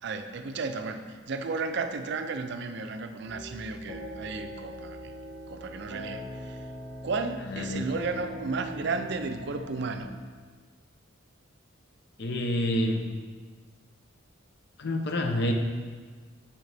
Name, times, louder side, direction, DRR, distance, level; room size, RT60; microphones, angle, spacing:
voice 1, 0.0-5.1 5.5-6.7 7.0-10.1, right 4 dB, 55° right, 8 dB, 0.4 m, -33 dB
sound 1, 3.3-10.1, equal, 85° left, 1.4 m, -41 dB
voice 2, 7.5-7.9 12.2-13.0 14.8-15.5, left 1 dB, 55° left, 4 dB, 0.7 m, -28 dB
7.4 x 6.5 x 3.4 m, 1.5 s
head